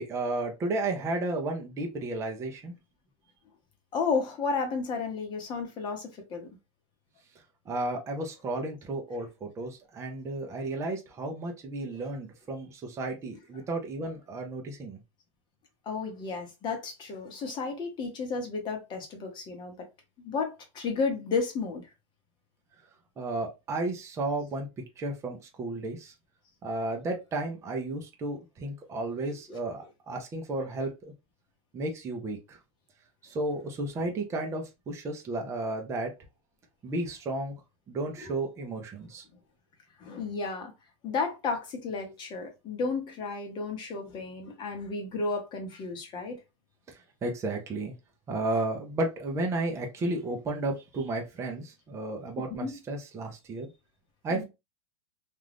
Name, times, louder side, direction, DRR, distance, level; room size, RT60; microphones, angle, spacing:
voice 1, 0.0-2.7 7.7-15.0 23.2-24.7 25.0-26.1 26.6-30.9 31.7-32.6 33.2-36.1 36.8-37.5 37.9-39.2 46.9-47.9 48.3-53.7 54.2-54.4, right 2 dB, 20° right, 0.6 m, -33 dB
voice 2, 3.9-6.5 15.9-19.9 20.2-21.8 29.5-29.6 38.2-38.3 40.0-40.7 41.0-46.4 52.5-52.7 54.3-54.4, left 4 dB, 30° left, 1.0 m, -32 dB
2.5 x 2.3 x 3.3 m
supercardioid pair, 135°, 16 cm